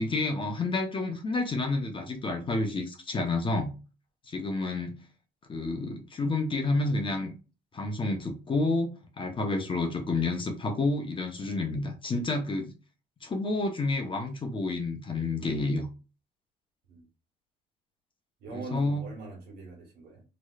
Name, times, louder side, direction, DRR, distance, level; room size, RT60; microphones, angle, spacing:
voice 1, 0.0-3.7 4.2-4.9 5.5-7.3 7.7-12.7 13.2-15.9 18.5-19.0, left 2 dB, 30° left, 0.8 m, -29 dB
voice 2, 18.4-20.2, right 3 dB, 70° right, 1.7 m, -42 dB
3.1 x 3.0 x 2.3 m
cardioid pair, 110°, 17 cm